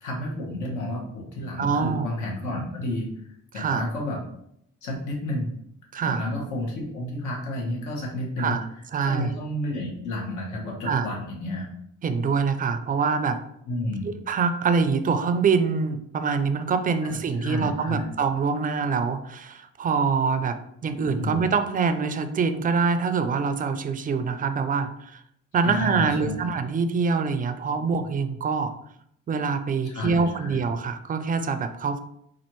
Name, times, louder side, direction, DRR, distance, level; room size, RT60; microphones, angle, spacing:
voice 1, 0.0-4.2 4.8-5.5 6.0-8.6 9.0-11.7 13.7-14.1 17.0-18.1 21.0-21.4 25.6-26.4 29.8-30.6, left 1 dB, 75° left, -1 dB, 1.2 m, -31 dB
voice 2, 1.6-2.1 3.5-3.9 5.9-6.3 8.4-8.6 8.9-9.3 10.8-11.1 12.0-13.4 14.3-25.2 25.5-28.7 29.3-32.0, right 5 dB, 30° right, 9 dB, 0.3 m, -25 dB
4.3 x 2.4 x 3.0 m, 0.73 s
cardioid pair, 90°, 30 cm